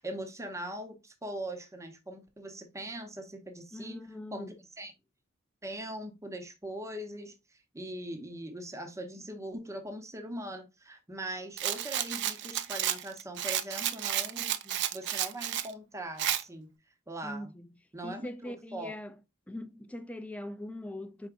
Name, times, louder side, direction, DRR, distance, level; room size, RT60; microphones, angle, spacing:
voice 1, 0.0-4.0 4.3-4.9 5.6-16.7 17.1-17.5 17.9-19.0, right 1 dB, 15° right, 0.7 m, -41 dB
voice 2, 3.7-4.6 17.2-17.7 18.0-19.1 19.5-21.3, left 1 dB, 5° left, 0.4 m, -41 dB
Rattle, 11.6-15.7 16.2-16.4, right 11 dB, 55° right, 0.4 m, -32 dB
4.7 x 3.9 x 2.4 m
head